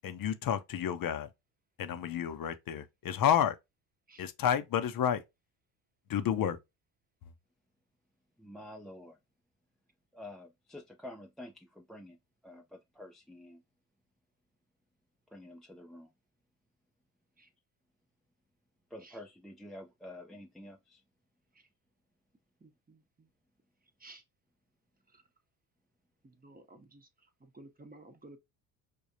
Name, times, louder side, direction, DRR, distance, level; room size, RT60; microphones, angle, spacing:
voice 1, 0.0-1.3 1.8-3.6 4.2-5.2 6.1-6.6, left 9 dB, 45° left, 0.7 m, -30 dB
voice 2, 8.4-9.2 10.1-12.2 12.4-13.6 15.3-16.1 18.9-21.0, left 1 dB, ahead, 0.4 m, -49 dB
voice 3, 22.6-23.3 24.0-24.2 25.1-25.2 26.2-28.4, right 2 dB, 20° right, 0.9 m, -55 dB
5.0 x 2.3 x 2.6 m
hypercardioid pair, 65°, 46 cm